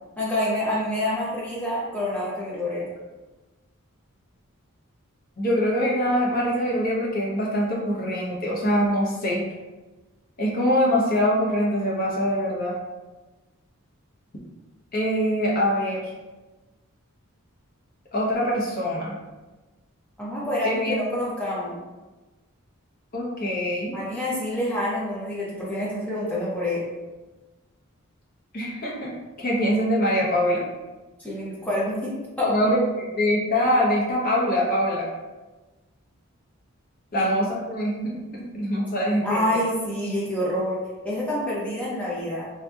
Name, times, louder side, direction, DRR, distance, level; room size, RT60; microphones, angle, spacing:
voice 1, 0.2-2.9 20.2-21.8 23.9-26.8 31.2-32.1 32.4-32.6 37.1-37.4 39.2-40.8 41.0-42.5, left 1 dB, 5° left, -7 dB, 0.8 m, -27 dB
voice 2, 5.4-9.4 10.4-12.7 14.9-16.1 18.1-19.2 20.6-21.0 23.1-24.0 28.5-29.1 29.4-30.6 32.4-35.1 37.1-38.1 38.5-39.4, equal, 40° left, -4 dB, 0.7 m, -23 dB
3.3 x 2.7 x 2.3 m, 1.2 s
head